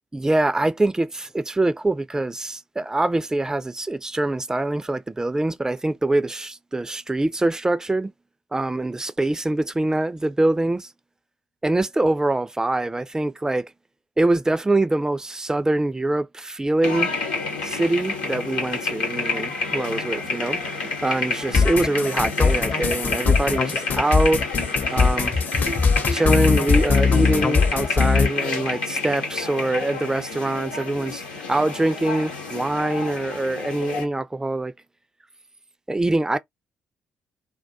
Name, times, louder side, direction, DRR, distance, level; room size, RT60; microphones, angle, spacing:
voice 1, 0.1-8.1 8.5-10.9 11.6-13.7 14.2-17.1 17.6-24.4 24.9-25.4 26.1-31.2 31.5-34.7 35.9-36.4, right 2 dB, 15° right, 0.3 m, -24 dB
sound 1, 16.8-34.1, left 3 dB, 80° left, 0.8 m, -29 dB
sound 2, 21.5-28.3, left 5 dB, 40° left, 0.6 m, -20 dB
2.2 x 2.2 x 2.6 m
figure-of-eight pair, 45°, 5 cm